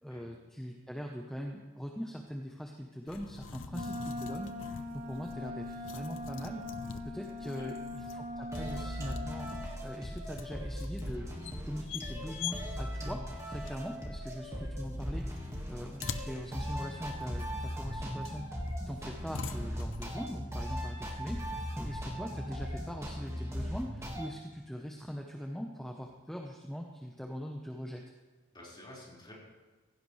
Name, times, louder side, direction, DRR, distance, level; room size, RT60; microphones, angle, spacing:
voice 1, 0.0-9.5 9.8-11.3 11.6-18.5 18.9-28.0, equal, ahead, 1 dB, 0.9 m, -42 dB
sound 1, 3.1-20.5, left 5 dB, 65° left, 0.7 m, -46 dB
Wind instrument woodwind instrument, 3.7-9.7, left 2 dB, 45° right, 2.9 m, -41 dB
sound 2, 8.5-24.3, equal, 15° right, 1.7 m, -38 dB
voice 2, 28.5-29.3, left 1 dB, 25° left, -5 dB, 4.7 m, -51 dB
16.0 x 16.0 x 3.3 m, 1.3 s
head